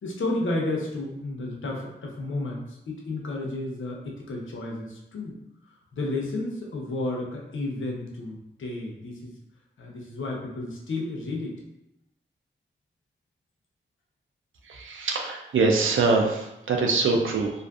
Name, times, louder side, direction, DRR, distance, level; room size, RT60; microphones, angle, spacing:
voice 1, 0.0-5.4 5.6-9.3 9.8-11.6, left 2 dB, 80° left, -1 dB, 0.6 m, -32 dB
voice 2, 14.7-17.5, right 3 dB, 80° right, 2 dB, 0.4 m, -23 dB
2.5 x 2.4 x 2.3 m, 0.89 s
cardioid pair, 50°, 20 cm